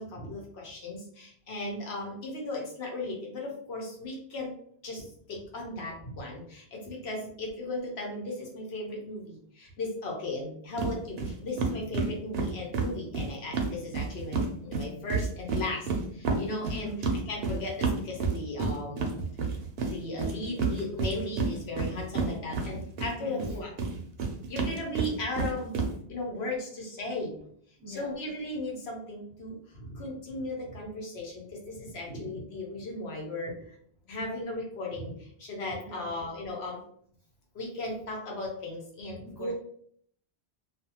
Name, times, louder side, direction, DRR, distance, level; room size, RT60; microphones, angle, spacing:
voice 1, 0.0-4.5 4.8-19.1 19.9-23.7 24.5-25.8 26.1-27.3 27.9-33.5 34.1-36.8 37.5-39.5, left 2 dB, 70° left, -1 dB, 1.0 m, -36 dB
sound 1, 10.8-10.9 11.2-11.3 11.6-14.5 14.7-23.1 23.4-25.9, right 4 dB, 70° right, 0.8 m, -29 dB
voice 2, 16.7-17.0 23.2-23.6 27.8-28.2 35.8-36.2 39.2-39.5, right 1 dB, 25° right, -5 dB, 0.8 m, -41 dB
2.5 x 2.4 x 2.8 m, 0.62 s
omnidirectional pair, 1.1 m